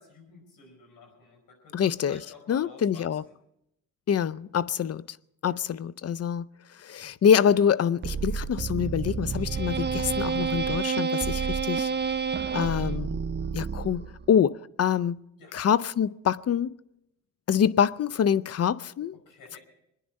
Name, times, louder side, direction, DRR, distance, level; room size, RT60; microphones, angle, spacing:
voice 1, 0.0-3.3 5.5-5.7 9.5-9.8 15.4-15.6 19.1-19.6, left 4 dB, 75° left, 5.1 m, -51 dB
voice 2, 1.7-2.2 2.5-3.2 4.1-5.2 5.4-6.5 6.8-11.9 12.5-13.2 13.5-15.2 15.5-16.7 17.5-19.1, left 8 dB, 45° left, 0.6 m, -25 dB
sound 1, 8.0-14.3, right 6 dB, 30° right, 0.8 m, -29 dB
23.5 x 10.0 x 5.3 m
supercardioid pair, 55°, 34 cm